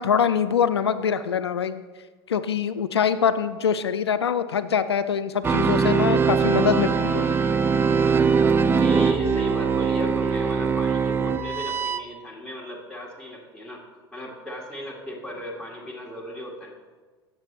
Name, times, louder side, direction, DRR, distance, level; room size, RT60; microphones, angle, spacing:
voice 1, 0.0-1.8 2.3-7.2, left 7 dB, 90° left, 13 dB, 0.4 m, -24 dB
sound 1, 5.4-12.0, right 5 dB, 15° right, 0.4 m, -22 dB
voice 2, 7.0-7.6 8.8-13.8 14.1-16.7, equal, 5° left, -3 dB, 1.7 m, -36 dB
7.4 x 6.6 x 3.2 m, 1.4 s
hypercardioid pair, 85°, 13 cm